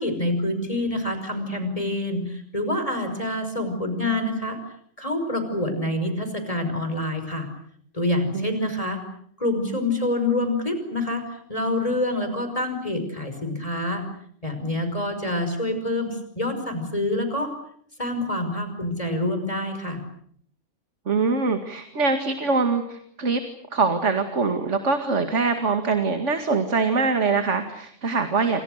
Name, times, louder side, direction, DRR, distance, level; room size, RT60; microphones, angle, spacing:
voice 1, 0.0-4.6 5.0-7.5 7.9-9.0 9.4-11.2 11.5-14.0 14.4-17.5 18.0-20.0, left 1 dB, 30° left, 8 dB, 5.7 m, -26 dB
voice 2, 8.3-8.7 21.1-23.4 23.7-28.6, right 4 dB, 70° right, 6 dB, 2.5 m, -23 dB
29.5 x 26.5 x 6.6 m, 0.65 s
omnidirectional pair, 1.3 m